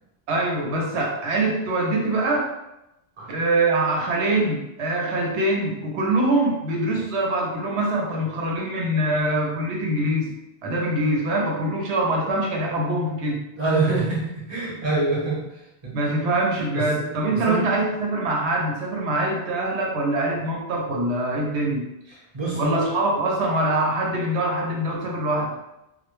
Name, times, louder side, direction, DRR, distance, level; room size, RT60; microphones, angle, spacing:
voice 1, 0.3-2.5 3.3-10.3 10.6-13.4 15.9-21.8 22.5-25.5, right 1 dB, 90° right, -1 dB, 0.9 m, -24 dB
voice 2, 13.6-15.5 15.8-15.9 16.7-17.0 17.3-17.6 22.3-22.8, right 3 dB, 30° right, -6 dB, 0.8 m, -25 dB
2.2 x 2.1 x 3.0 m, 0.89 s
omnidirectional pair, 1.1 m